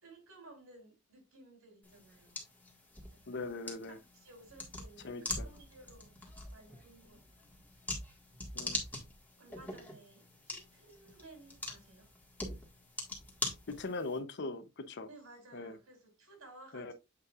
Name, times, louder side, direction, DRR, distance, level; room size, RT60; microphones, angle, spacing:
voice 1, 0.0-2.4 3.1-3.4 4.1-7.5 8.6-8.9 9.4-12.1 15.1-16.9, right 2 dB, 80° right, 3.4 m, -57 dB
sound 1, 1.8-14.2, left 2 dB, 10° left, 1.6 m, -43 dB
voice 2, 3.3-4.0 5.0-5.5 8.5-8.8 13.7-15.1 15.5-15.8 16.7-16.9, left 3 dB, 55° left, 0.7 m, -40 dB
7.7 x 5.5 x 2.4 m
head